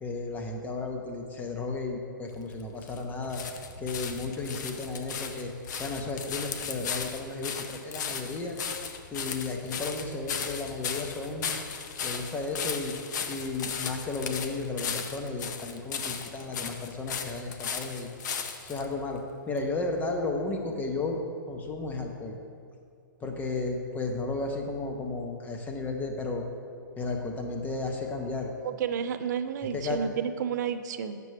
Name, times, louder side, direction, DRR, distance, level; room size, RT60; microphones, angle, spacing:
voice 1, 0.0-3.4 3.8-5.5 5.8-8.6 9.1-11.5 12.0-12.9 13.3-18.1 18.6-19.2 19.5-21.2 21.5-22.4 23.2-26.4 27.0-28.5 29.7-30.0, left 3 dB, 15° left, 3 dB, 0.8 m, -33 dB
sound 1, 2.3-18.9 19.6-19.7, left 6 dB, 60° left, 0.7 m, -36 dB
voice 2, 28.6-31.2, right 8 dB, 60° right, 10 dB, 0.5 m, -31 dB
8.5 x 6.8 x 3.3 m, 2.4 s
hypercardioid pair, 130°, 11 cm